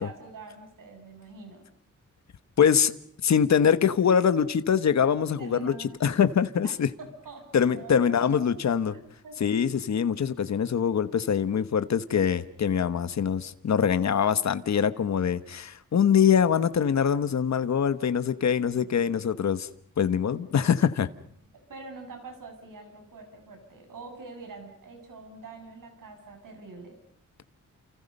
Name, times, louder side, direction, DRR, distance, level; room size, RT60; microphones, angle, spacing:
voice 1, 0.0-1.6 5.4-6.0 6.6-8.5 8.9-9.4 18.4-19.3 21.5-26.9, right 3 dB, 90° right, 7.8 m, -45 dB
voice 2, 2.6-2.9 3.2-6.9 7.5-8.9 9.4-19.7 20.0-21.1, left 7 dB, 60° left, 1.2 m, -24 dB
29.5 x 29.0 x 5.5 m
wide cardioid pair, 160°, 31 cm